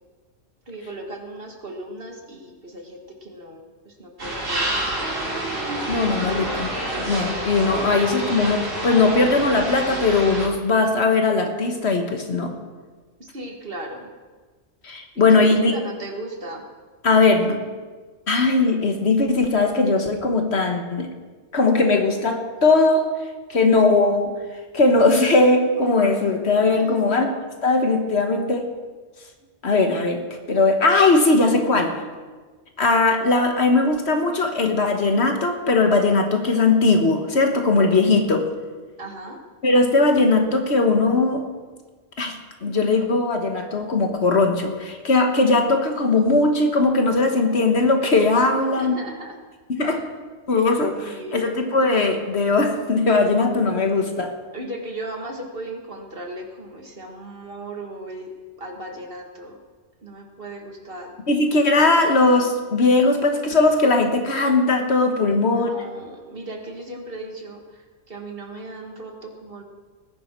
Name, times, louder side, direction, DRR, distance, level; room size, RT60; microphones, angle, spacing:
voice 1, 0.7-4.7 13.2-14.1 15.1-16.7 26.8-27.2 39.0-39.4 48.8-49.4 49.8-50.1 50.8-51.6 54.5-58.3 58.6-59.6 60.0-61.2 65.3-69.6, right 1 dB, 45° right, 2 dB, 2.0 m, -37 dB
sound 1, 4.2-10.5, right 1 dB, 85° right, 3.1 m, -28 dB
voice 2, 5.5-12.5 14.8-15.7 17.0-17.6 18.3-21.1 21.5-23.1 23.5-24.4 24.7-27.3 27.6-28.7 29.6-32.0 32.8-38.5 39.6-41.5 42.2-42.3 42.6-49.0 49.7-50.0 50.5-54.3 61.3-65.7, left 3 dB, 55° left, 5 dB, 1.6 m, -19 dB
19.0 x 11.0 x 4.6 m, 1.4 s
omnidirectional pair, 1.3 m